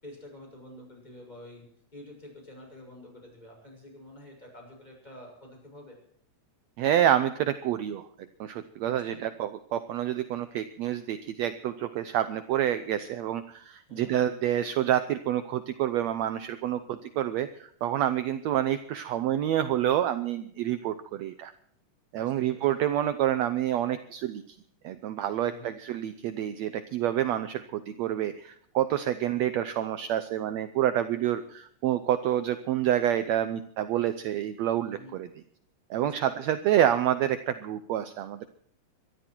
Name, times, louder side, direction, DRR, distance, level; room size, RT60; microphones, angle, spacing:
voice 1, 0.0-6.0 8.8-9.2 13.9-14.2 22.1-22.7 25.4-25.7 34.8-35.1 35.9-36.5, left 1 dB, 10° left, 0 dB, 6.4 m, -48 dB
voice 2, 6.8-8.0 8.4-21.5 22.1-24.4 24.8-35.3 35.9-38.5, right 11 dB, 70° right, 11 dB, 1.7 m, -28 dB
23.0 x 13.0 x 4.5 m, 0.66 s
omnidirectional pair, 3.7 m